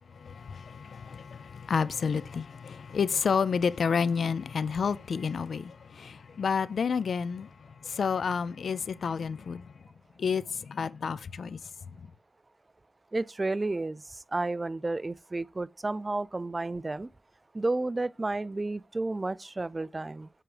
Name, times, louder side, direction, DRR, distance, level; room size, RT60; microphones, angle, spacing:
voice 1, 0.0-9.8 10.2-12.1, left 6 dB, 85° left, 0.4 m, -30 dB
voice 2, 13.1-14.0 14.3-17.1 17.5-20.3, right 2 dB, 35° right, 0.4 m, -31 dB
7.7 x 4.7 x 4.9 m
cardioid pair, 65°, 0 cm